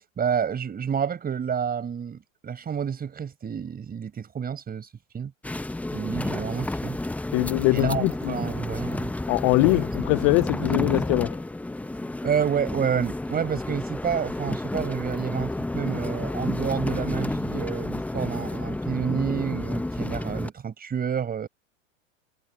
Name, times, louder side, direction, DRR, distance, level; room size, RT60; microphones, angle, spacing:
voice 1, 0.2-4.9 5.1-5.3 5.9-7.0 7.7-9.1 12.2-21.5, right 7 dB, 25° right, 5.2 m, -29 dB
sound 1, 5.4-20.5, left 2 dB, 5° left, 0.8 m, -30 dB
voice 2, 7.3-8.4 9.3-11.4, left 29 dB, 35° left, 0.4 m, -22 dB
hypercardioid pair, 110°, 39 cm